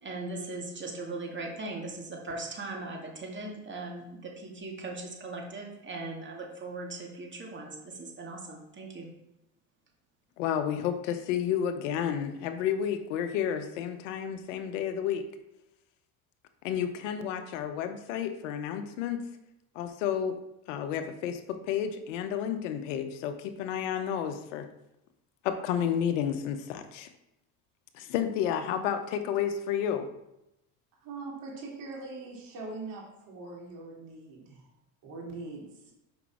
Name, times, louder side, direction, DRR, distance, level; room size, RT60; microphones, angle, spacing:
voice 1, 0.0-9.1, right 2 dB, 30° right, 1 dB, 2.1 m, -39 dB
voice 2, 10.4-15.3 16.6-19.2 19.7-20.4 20.7-24.7 25.4-27.1 27.9-30.1, left 9 dB, 85° left, 7 dB, 0.8 m, -31 dB
voice 3, 30.9-34.7 35.0-35.9, right 3 dB, 65° right, -3 dB, 2.9 m, -42 dB
5.9 x 5.2 x 4.7 m, 0.87 s
supercardioid pair, 80°, 37 cm